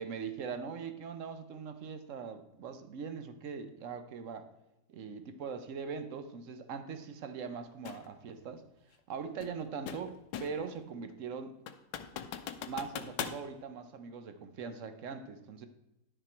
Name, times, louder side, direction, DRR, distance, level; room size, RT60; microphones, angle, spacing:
voice 1, 0.0-4.5 4.9-8.6 9.1-11.6 12.7-15.7, right 6 dB, 60° right, 9 dB, 0.9 m, -41 dB
sound 1, 7.9-8.1 9.4-10.7 11.1-11.2 11.7-13.4, left 9 dB, 90° left, 1.3 m, -40 dB
10.5 x 6.7 x 4.4 m, 0.94 s
omnidirectional pair, 1.9 m